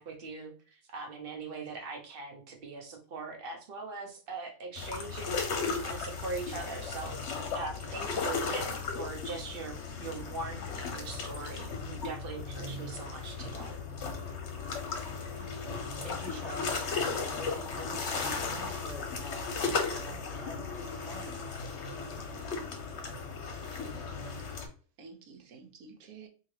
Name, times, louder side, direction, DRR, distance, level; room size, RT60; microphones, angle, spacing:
voice 1, 0.0-5.4 5.8-7.2 7.5-13.8, right 3 dB, 45° right, 2 dB, 0.9 m, -41 dB
sound 1, 4.8-24.7, left 4 dB, 60° left, 0.9 m, -36 dB
voice 2, 15.5-21.4, equal, ahead, -2 dB, 0.4 m, -46 dB
voice 3, 24.1-24.7 25.0-26.3, right 5 dB, 80° right, 3 dB, 1.2 m, -52 dB
3.6 x 2.7 x 3.2 m, 0.39 s
omnidirectional pair, 1.5 m